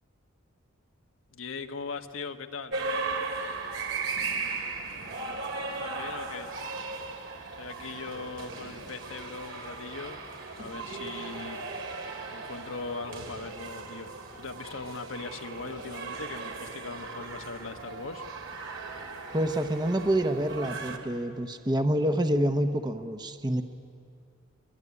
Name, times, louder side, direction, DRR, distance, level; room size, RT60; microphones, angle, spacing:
voice 1, 1.3-2.8 5.8-6.5 7.6-10.2 10.6-11.6 12.3-18.2, left 4 dB, 85° left, 5 dB, 1.3 m, -40 dB
sound 1, 2.7-21.0, right 3 dB, 70° right, 2.8 m, -37 dB
voice 2, 19.3-23.6, right 1 dB, 20° right, 7 dB, 0.8 m, -27 dB
23.5 x 22.5 x 9.7 m, 2.4 s
head